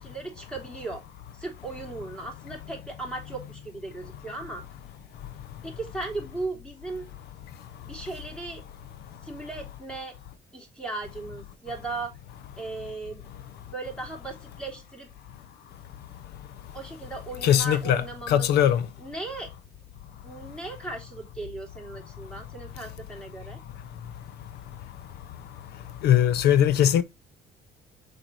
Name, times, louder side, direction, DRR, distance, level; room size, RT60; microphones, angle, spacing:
voice 1, 0.0-1.0 1.4-4.6 5.6-7.1 7.8-8.6 9.2-10.1 10.5-12.2 12.6-13.2 13.7-15.1 16.7-18.5 19.0-19.5 20.2-23.6, right 3 dB, 5° left, 3.6 m, -37 dB
voice 2, 17.4-18.0 18.3-18.8 26.0-27.0, left 10 dB, 75° left, 0.8 m, -20 dB
6.4 x 4.7 x 4.6 m
cardioid pair, 110°, 17 cm